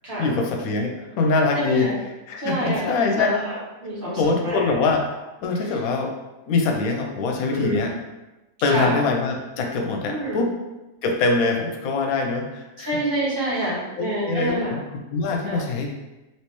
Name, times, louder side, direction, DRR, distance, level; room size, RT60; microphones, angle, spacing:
voice 1, 0.2-1.9 2.3-3.3 4.2-5.0 5.4-6.1 6.5-7.9 8.6-10.5 11.0-12.9 14.0-14.8 15.1-15.9, left 3 dB, 90° left, 2 dB, 1.0 m, -23 dB
voice 2, 1.5-2.0 2.4-3.5 3.8-4.7 7.5-7.9 8.7-8.9 10.1-10.4 12.8-14.8 15.5-15.6, right 1 dB, 40° right, -8 dB, 1.3 m, -27 dB
3.2 x 2.9 x 3.0 m, 1.0 s
omnidirectional pair, 1.5 m